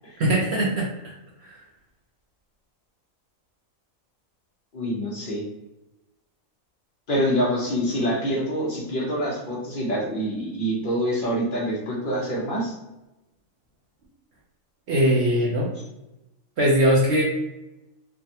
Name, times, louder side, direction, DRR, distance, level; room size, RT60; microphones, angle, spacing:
voice 1, 0.2-1.1 1.4-1.6 14.9-15.7 16.6-17.2, equal, 60° right, -4 dB, 0.8 m, -21 dB
voice 2, 4.7-5.4 7.1-12.8, equal, 45° left, -3 dB, 1.0 m, -26 dB
3.4 x 2.2 x 2.7 m, 0.97 s
omnidirectional pair, 1.4 m